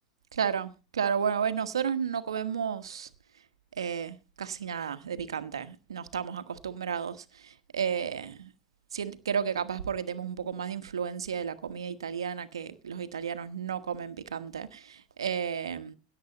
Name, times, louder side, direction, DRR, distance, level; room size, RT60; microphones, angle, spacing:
voice 1, 0.3-3.1 3.7-8.5 8.9-15.9, right 7 dB, 85° right, 1.3 m, -33 dB
17.0 x 8.2 x 4.1 m
hypercardioid pair, 95°, 3 cm